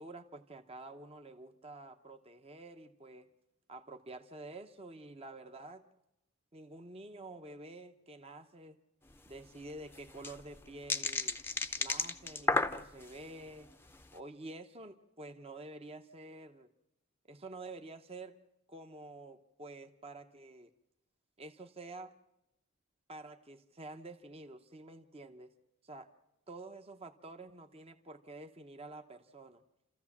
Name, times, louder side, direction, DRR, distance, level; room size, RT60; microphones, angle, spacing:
voice 1, 0.0-3.3 3.7-5.8 6.5-8.8 9.3-11.4 11.8-13.7 14.1-16.7 17.3-18.4 18.7-20.7 21.4-22.2 23.1-25.5 25.8-26.1 26.5-29.6, right 2 dB, 25° right, 7 dB, 0.9 m, -49 dB
sound 1, 9.1-9.2 9.4-9.5 9.9-13.2 13.7-14.0, left 3 dB, 10° left, 0.7 m, -33 dB
29.5 x 14.0 x 7.2 m, 0.89 s
head